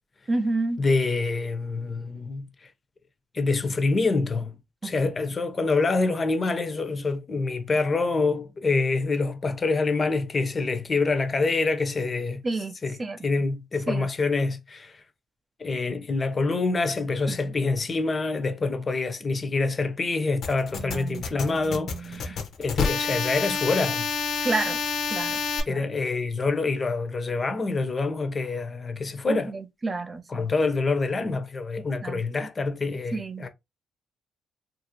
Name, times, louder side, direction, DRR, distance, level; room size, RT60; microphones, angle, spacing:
voice 1, 0.3-0.8 4.8-5.1 12.4-13.2 13.9-14.1 17.3-17.6 20.7-22.4 24.4-24.8 25.1-25.4 25.7-25.9 29.3-30.5 32.0-32.5 33.1-33.4, right 3 dB, 30° right, 0.5 m, -31 dB
voice 2, 0.8-2.7 3.3-4.6 4.8-12.4 12.8-13.0 13.2-15.0 15.6-24.1 25.7-29.5 30.3-33.5, left 3 dB, 35° left, 0.7 m, -26 dB
sound 1, 20.4-25.6, left 5 dB, 65° left, 0.8 m, -28 dB
2.9 x 2.6 x 2.8 m
cardioid pair, 90°, 0 cm